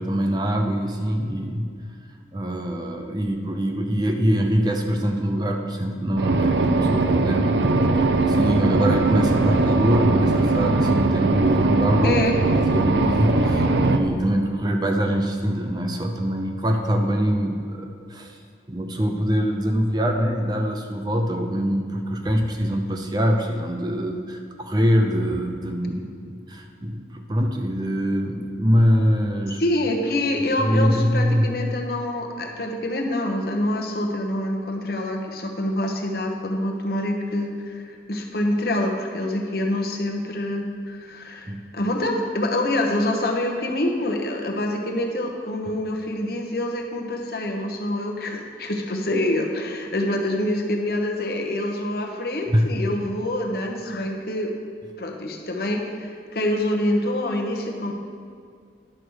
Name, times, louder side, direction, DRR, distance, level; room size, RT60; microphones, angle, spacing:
voice 1, 0.0-1.7 2.3-12.2 12.7-18.4 18.7-29.6 30.6-31.5 41.5-41.6 52.5-52.9, equal, 25° right, 4 dB, 0.6 m, -23 dB
sound 1, 6.2-14.0, right 2 dB, 75° right, 0.6 m, -20 dB
voice 2, 12.0-12.3 29.6-54.5 55.0-57.9, left 1 dB, 55° left, 2 dB, 1.0 m, -26 dB
11.0 x 4.8 x 6.3 m, 2.2 s
head